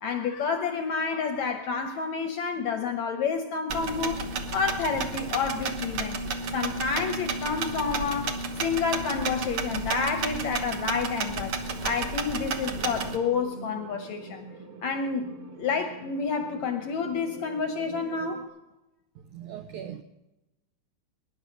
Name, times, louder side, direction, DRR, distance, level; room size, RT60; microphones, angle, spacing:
voice 1, 0.0-6.2 6.5-11.5 11.8-14.4 14.8-18.5, left 5 dB, 75° left, 6 dB, 1.7 m, -29 dB
sound 1, 3.7-13.2, right 3 dB, 70° right, 1.3 m, -32 dB
sound 2, 12.7-18.4, right 4 dB, 50° right, 1.8 m, -44 dB
voice 2, 19.3-20.0, right 9 dB, 85° right, 8 dB, 1.7 m, -39 dB
21.5 x 10.5 x 6.4 m, 0.98 s
omnidirectional pair, 4.2 m